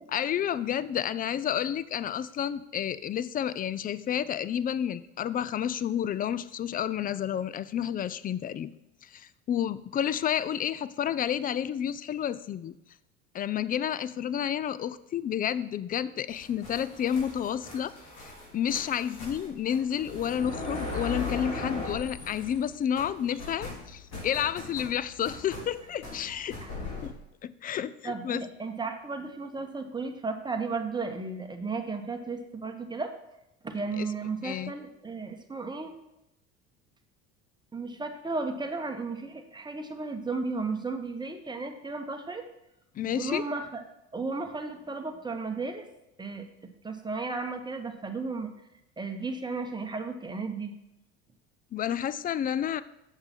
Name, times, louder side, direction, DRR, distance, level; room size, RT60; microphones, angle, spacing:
voice 1, 0.1-8.7 9.1-12.7 13.3-17.9 18.5-26.6 27.0-27.1 27.4-28.4 34.0-34.1 34.4-34.7 43.0-43.4 51.7-52.8, left 9 dB, 25° left, 15 dB, 0.4 m, -30 dB
sound 1, 16.3-22.7 22.9-27.1, left 3 dB, 50° left, 3.1 m, -39 dB
voice 2, 28.0-33.1 33.6-35.9 37.7-42.4 43.1-43.8 44.1-45.8 46.2-48.5 49.0-50.7, right 3 dB, 15° right, 5 dB, 1.1 m, -34 dB
6.9 x 6.7 x 4.3 m, 0.88 s
hypercardioid pair, 80°, 34 cm